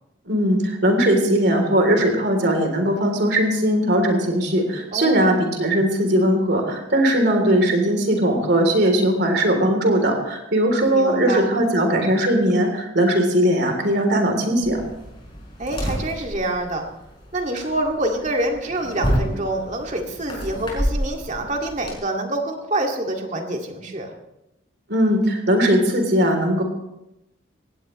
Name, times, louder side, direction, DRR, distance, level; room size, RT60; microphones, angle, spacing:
voice 1, 0.2-14.8 24.9-26.6, right 1 dB, 60° right, 4 dB, 3.4 m, -19 dB
voice 2, 4.9-5.3 10.9-11.5 15.6-16.8 17.3-24.1, right 1 dB, 40° right, 2 dB, 2.2 m, -26 dB
sound 1, 14.6-22.0, equal, 25° left, 5.0 m, -29 dB
19.0 x 17.0 x 3.2 m, 0.88 s
head